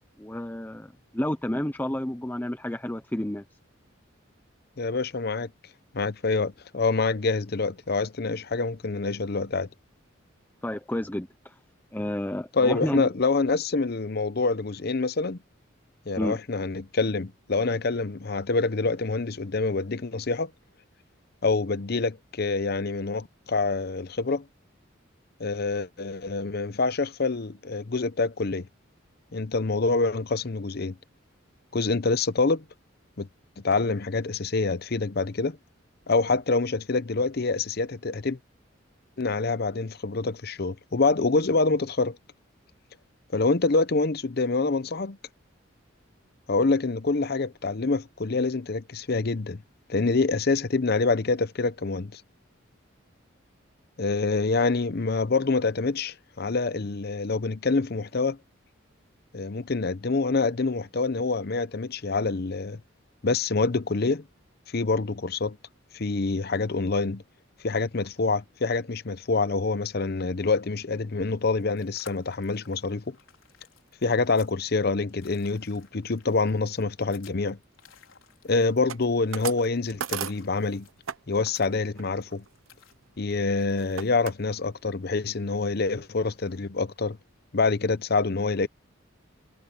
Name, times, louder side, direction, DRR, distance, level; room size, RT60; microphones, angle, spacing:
voice 1, 0.2-3.4 10.6-11.6 11.9-13.0 16.2-16.4, left 1 dB, 10° left, 0.7 m, -30 dB
voice 2, 4.8-5.5 5.9-9.7 12.5-15.4 16.1-20.5 21.4-24.4 25.4-28.7 29.3-31.0 31.7-32.6 33.2-33.3 33.6-35.6 36.1-38.4 39.2-42.2 43.3-45.2 46.5-49.6 49.9-52.2 54.0-58.4 59.3-62.8 63.2-64.2 64.7-65.6 65.9-67.2 67.6-73.2 74.0-77.6 78.4-80.9 81.3-82.4 83.2-87.2 87.5-88.7, left 3 dB, 50° left, 0.7 m, -26 dB
sound 1, 71.4-82.9, left 7 dB, 85° left, 5.1 m, -56 dB
sound 2, 78.9-81.2 81.4-81.7 82.0-84.3 84.9-85.2 85.6-85.7 85.9-86.5, right 8 dB, 90° right, 0.7 m, -37 dB
head